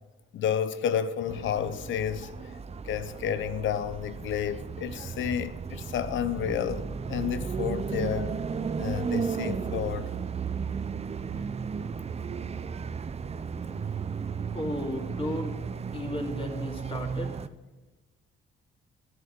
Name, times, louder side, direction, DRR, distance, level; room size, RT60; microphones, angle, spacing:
voice 1, 0.3-2.3 2.8-8.3 8.7-10.1, left 9 dB, 75° left, 0.9 m, -31 dB
sound 1, 1.3-17.5, right 6 dB, 30° right, 0.6 m, -34 dB
voice 2, 14.5-15.6 15.9-17.4, left 1 dB, 30° left, 3.0 m, -34 dB
13.5 x 8.1 x 6.8 m
cardioid pair, 90°, 20 cm